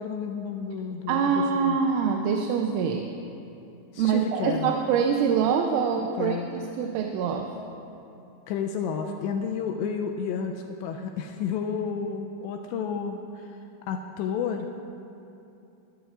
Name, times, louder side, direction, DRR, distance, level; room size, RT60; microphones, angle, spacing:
voice 1, 0.0-1.8 3.9-4.7 6.2-6.5 8.5-13.6 13.9-14.7, left 6 dB, 90° left, 4 dB, 2.5 m, -31 dB
voice 2, 1.1-3.1 4.0-7.5, right 6 dB, 85° right, 3 dB, 3.1 m, -25 dB
22.0 x 13.5 x 2.5 m, 2.8 s
omnidirectional pair, 5.6 m